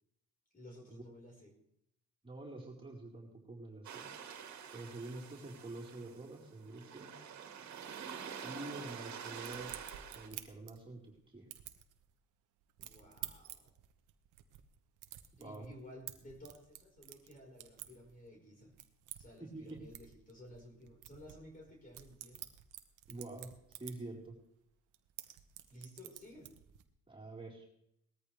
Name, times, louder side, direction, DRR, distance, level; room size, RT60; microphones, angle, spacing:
voice 1, 0.5-1.5 12.8-13.7 15.4-18.8 19.2-22.4 25.7-26.5, left 1 dB, 25° left, -1 dB, 4.9 m, -55 dB
voice 2, 2.2-4.1 4.7-7.1 8.4-9.7 10.1-11.5 15.4-15.7 19.5-19.8 23.1-24.4 27.1-27.7, right 2 dB, 15° right, -3 dB, 4.4 m, -47 dB
sound 1, 3.8-10.3, right 7 dB, 65° right, 2.2 m, -47 dB
sound 2, 9.4-11.2 11.5-12.1 12.6-18.3 18.6-24.4 24.7-26.8, right 13 dB, 90° right, 1.1 m, -51 dB
19.5 x 14.0 x 3.4 m, 0.74 s
cardioid pair, 90°, 30 cm